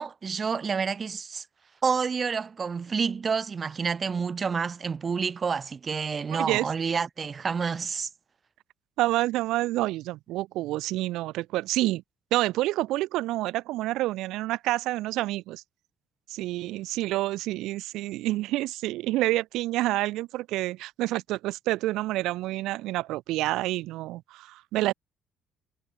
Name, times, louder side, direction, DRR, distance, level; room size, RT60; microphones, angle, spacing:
voice 1, 0.0-1.4 1.8-8.1, right 5 dB, 40° right, 3.6 m, -29 dB
voice 2, 6.3-6.7 9.0-12.0 12.3-15.6 16.3-24.9, right 17 dB, 75° right, 0.5 m, -28 dB
supercardioid pair, 60°, 0 cm